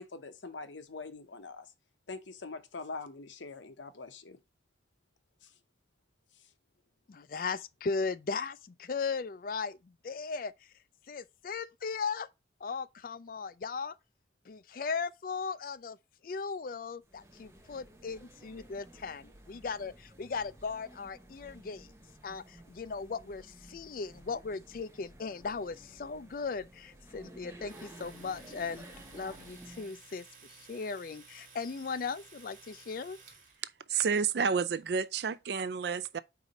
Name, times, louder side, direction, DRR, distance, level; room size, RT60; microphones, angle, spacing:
voice 1, 0.0-1.7 2.1-4.4 5.4-5.5, left 3 dB, 85° left, 0.9 m, -43 dB
voice 2, 7.1-12.3 12.6-14.0 14.4-16.0 16.2-21.9 22.2-28.9 29.1-33.2, left 5 dB, 50° left, 0.4 m, -37 dB
sound 1, 17.0-30.0, right 1 dB, 15° right, 1.0 m, -54 dB
Domestic sounds home sounds, 27.7-33.6, right 5 dB, 45° right, 1.7 m, -56 dB
voice 3, 33.9-36.2, right 6 dB, 60° right, 0.4 m, -30 dB
4.8 x 3.8 x 5.2 m
head